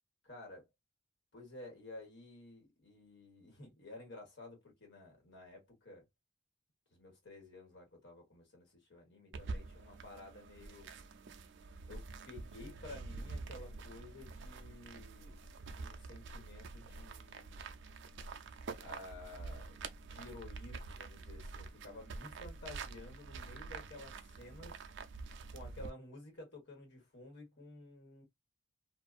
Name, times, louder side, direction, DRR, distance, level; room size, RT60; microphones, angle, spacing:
voice 1, 0.2-0.6 1.3-6.1 6.9-10.9 11.9-17.6 18.8-24.9 25.5-28.2, left 2 dB, 55° left, 1.5 m, -53 dB
sound 1, 9.3-25.9, right 4 dB, 55° right, 0.4 m, -47 dB
2.5 x 2.4 x 2.4 m
head